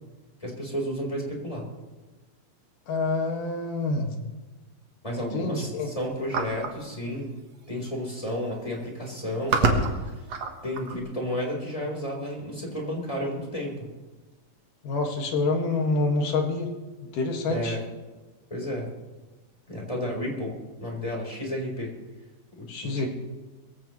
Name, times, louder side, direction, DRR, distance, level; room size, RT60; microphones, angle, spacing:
voice 1, 0.4-1.7 5.0-7.3 7.7-10.1 10.6-13.9 17.5-17.9 18.5-18.9 19.7-20.5 20.8-21.9 22.6-23.1, equal, 10° left, -1 dB, 4.0 m, -32 dB
voice 2, 2.9-4.1 5.3-5.9 14.8-16.7 17.0-17.8 22.7-23.1, left 3 dB, 65° left, 2 dB, 3.4 m, -27 dB
sound 1, 6.3-6.8 7.8-7.9 8.2-8.5 9.1-11.0, right 3 dB, 55° right, 2.2 m, -26 dB
22.5 x 16.0 x 3.2 m, 1.2 s
omnidirectional pair, 4.1 m